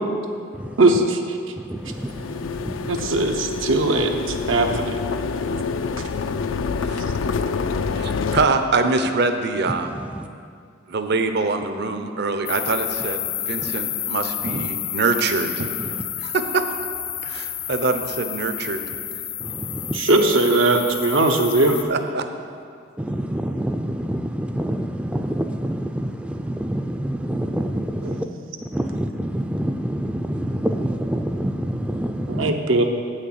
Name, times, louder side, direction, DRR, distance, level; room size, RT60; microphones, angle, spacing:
voice 1, 0.8-1.4 2.9-5.0 19.9-21.8 28.0-28.2 32.3-32.8, right 2 dB, 85° right, 3 dB, 0.9 m, -19 dB
voice 2, 1.6-3.1 10.0-10.3 13.6-13.7 14.5-14.7 19.4-20.0 23.0-28.3 28.7-32.5, right 1 dB, 5° right, 5 dB, 0.4 m, -27 dB
sound 1, 1.9-8.5, left 5 dB, 80° left, 0.4 m, -27 dB
voice 3, 7.9-9.9 10.9-15.7 16.2-16.6 17.2-18.8 21.9-22.3, right 3 dB, 60° right, 7 dB, 0.7 m, -24 dB
sound 2, 12.5-21.8, left 11 dB, 60° left, 0.8 m, -30 dB
8.4 x 6.5 x 7.5 m, 2.3 s
head